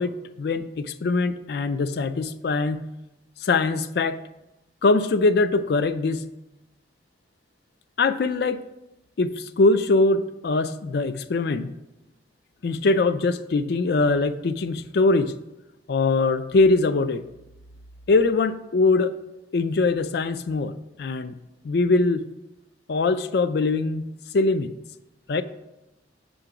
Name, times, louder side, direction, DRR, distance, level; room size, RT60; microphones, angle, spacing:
voice 1, 0.0-2.9 3.4-4.2 4.8-6.3 8.0-8.6 9.2-11.7 12.6-15.3 15.9-17.2 18.1-19.2 19.5-21.4 21.6-22.2 22.9-24.7 25.3-25.4, left 3 dB, 55° left, 13 dB, 0.4 m, -22 dB
7.4 x 3.9 x 5.8 m, 0.96 s
head